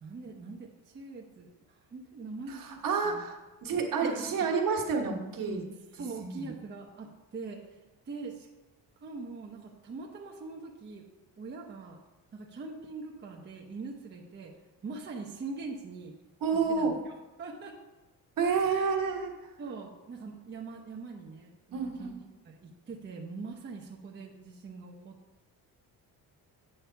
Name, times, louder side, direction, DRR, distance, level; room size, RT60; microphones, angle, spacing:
voice 1, 0.0-3.2 4.0-4.5 5.9-8.5 9.0-11.0 11.4-12.0 12.3-14.6 14.8-16.2 16.5-17.1 17.4-17.8 18.6-18.9 19.6-22.2 22.4-25.2, right 4 dB, 30° right, -1 dB, 0.8 m, -43 dB
voice 2, 2.5-5.6 5.9-6.5 16.4-16.9 18.4-19.3 21.7-22.1, right 5 dB, 60° right, 1 dB, 1.5 m, -30 dB
8.7 x 5.6 x 4.5 m, 1.1 s
cardioid pair, 140°, 38 cm